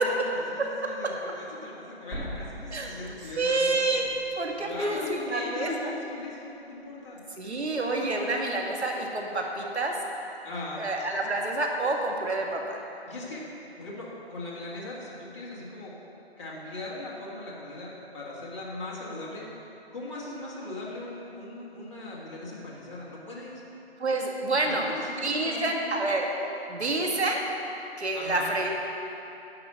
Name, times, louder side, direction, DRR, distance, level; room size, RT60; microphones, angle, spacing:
voice 1, 0.0-3.8 4.6-8.7 10.4-10.9 13.1-13.5 13.8-16.0 16.4-19.5 19.9-23.6 24.6-26.1 28.1-28.5, left 2 dB, 25° left, -7 dB, 1.7 m, -39 dB
sound 1, 2.1-6.3 6.6-6.7 8.1-8.2, equal, ahead, 1.5 m, -43 dB
voice 2, 3.4-4.0 4.4-5.8 7.4-9.9 10.8-12.8 24.0-24.9 25.2-26.3 26.7-27.4 28.0-28.7, right 2 dB, 80° right, 1 dB, 1.9 m, -28 dB
10.5 x 6.1 x 7.4 m, 2.9 s
hypercardioid pair, 170°, 33 cm